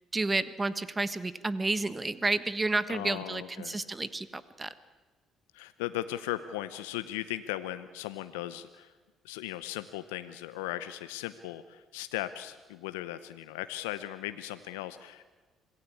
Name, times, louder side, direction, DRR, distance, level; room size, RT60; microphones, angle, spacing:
voice 1, 0.1-4.7, right 3 dB, 25° right, 14 dB, 1.4 m, -31 dB
voice 2, 2.9-3.9 5.5-8.9 9.2-15.3, left 14 dB, 85° left, 12 dB, 0.7 m, -37 dB
26.5 x 17.5 x 8.5 m, 1.3 s
hypercardioid pair, 50°, 0 cm